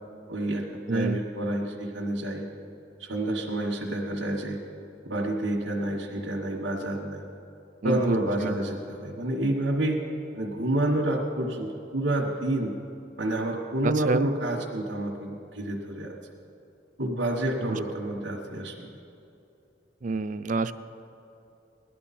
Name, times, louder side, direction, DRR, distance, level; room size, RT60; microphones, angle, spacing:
voice 1, 0.3-2.4 3.0-4.6 5.0-7.2 7.8-10.0 10.3-12.7 13.2-16.1 17.0-18.9, right 1 dB, 85° right, -4 dB, 1.4 m, -29 dB
voice 2, 7.8-8.2 8.4-8.6 13.8-14.3 17.6-17.8 20.0-20.7, right 3 dB, 45° right, 12 dB, 0.4 m, -27 dB
18.5 x 11.5 x 4.3 m, 2.7 s
head